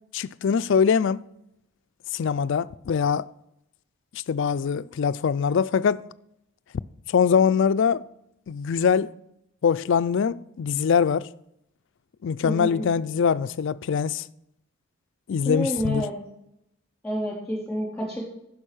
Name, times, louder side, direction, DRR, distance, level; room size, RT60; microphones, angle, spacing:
voice 1, 0.1-1.2 2.1-3.3 4.1-6.0 7.1-8.1 8.5-9.1 9.6-11.3 12.2-14.2 15.3-16.1, left 6 dB, 55° left, 0.3 m, -23 dB
voice 2, 12.4-12.8 15.4-16.1 17.0-18.2, equal, 5° left, 3.6 m, -28 dB
10.0 x 6.6 x 6.2 m
head